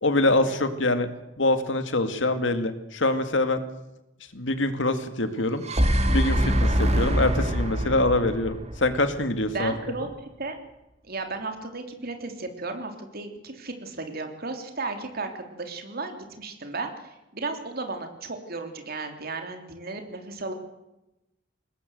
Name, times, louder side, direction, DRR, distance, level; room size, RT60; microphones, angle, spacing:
voice 1, 0.0-1.1 1.4-3.6 4.3-5.6 6.1-9.7, left 2 dB, 70° left, 9 dB, 2.2 m, -24 dB
sound 1, 5.4-9.6, equal, 35° right, 2.2 m, -24 dB
voice 2, 9.5-10.6 11.0-20.5, right 3 dB, 50° right, 6 dB, 3.2 m, -35 dB
22.5 x 19.5 x 7.9 m, 0.95 s
head